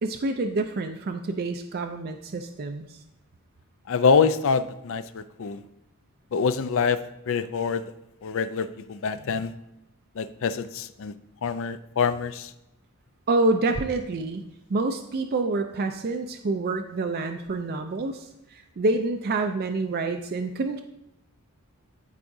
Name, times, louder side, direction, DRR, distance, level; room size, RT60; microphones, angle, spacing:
voice 1, 0.0-3.0 13.3-20.8, right 2 dB, 45° right, 6 dB, 0.4 m, -27 dB
voice 2, 3.9-5.6 6.3-7.0 7.3-7.8 8.2-9.5 10.2-11.1 11.4-12.5, left 5 dB, 60° left, 13 dB, 0.4 m, -25 dB
13.0 x 4.8 x 2.7 m, 0.92 s
head